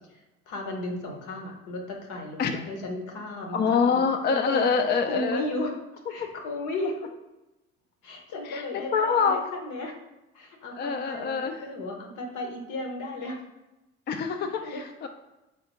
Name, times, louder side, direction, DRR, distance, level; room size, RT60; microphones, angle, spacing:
voice 1, 0.1-4.7 5.0-5.7 6.1-7.1 8.0-10.0 10.3-13.4 14.1-14.9, left 1 dB, 70° left, 1 dB, 0.9 m, -35 dB
voice 2, 3.5-5.5 8.5-9.4 10.8-11.6 14.1-15.1, left 5 dB, 35° left, 5 dB, 0.4 m, -25 dB
3.5 x 3.3 x 2.9 m, 0.99 s
hypercardioid pair, 55°, 32 cm